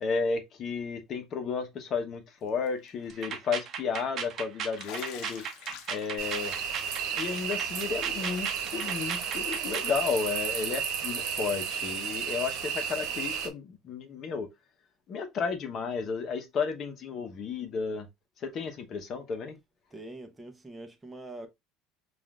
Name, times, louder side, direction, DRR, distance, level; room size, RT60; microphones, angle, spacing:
voice 1, 0.0-5.4 5.9-6.5 7.1-14.5 15.1-18.1 18.4-19.5, left 5 dB, 40° left, 0.9 m, -33 dB
Bathtub (filling or washing), 2.5-2.9 3.2-3.3 4.8-8.1 8.4-8.5 8.8-8.9 10.3-10.4 12.1-12.2, left 10 dB, 65° left, 0.6 m, -48 dB
sound 1, 3.1-9.9, right 7 dB, 40° right, 0.8 m, -37 dB
sound 2, 6.2-13.5, right 7 dB, 70° right, 1.0 m, -33 dB
voice 2, 19.9-21.5, right 2 dB, 10° right, 0.9 m, -44 dB
5.5 x 2.5 x 2.4 m
supercardioid pair, 130°, 0 cm